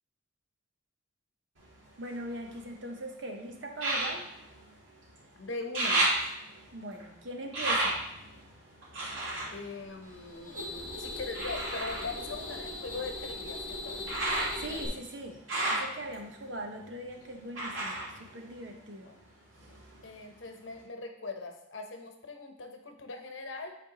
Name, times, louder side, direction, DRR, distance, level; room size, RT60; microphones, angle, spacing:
sound 1, 1.6-2.9 3.7-5.3 5.5-10.7 11.3-19.2 19.5-20.3 20.8-20.9, right 2 dB, 90° right, 2.6 m, -34 dB
voice 1, 2.0-4.3 6.7-8.0 14.6-15.4 15.6-19.1, right 1 dB, 65° right, 3 dB, 1.0 m, -41 dB
voice 2, 5.4-6.1 9.5-14.0 19.0-19.2 20.0-23.7, left 3 dB, 75° left, 4 dB, 0.9 m, -41 dB
sound 2, 10.0-14.9, left 2 dB, 45° right, 1.4 m, -39 dB
9.1 x 4.4 x 3.0 m, 0.81 s
head